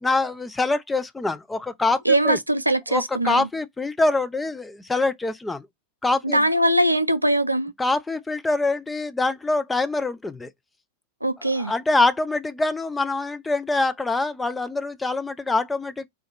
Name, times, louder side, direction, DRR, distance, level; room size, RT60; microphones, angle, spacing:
voice 1, 0.0-2.4 2.9-5.7 6.0-6.4 7.8-10.5 11.6-16.1, left 3 dB, 10° left, 0.6 m, -24 dB
voice 2, 2.1-3.5 6.2-7.7 11.2-11.7, right 1 dB, 85° right, 0.4 m, -21 dB
4.0 x 2.5 x 4.3 m
figure-of-eight pair, 90°, 0 cm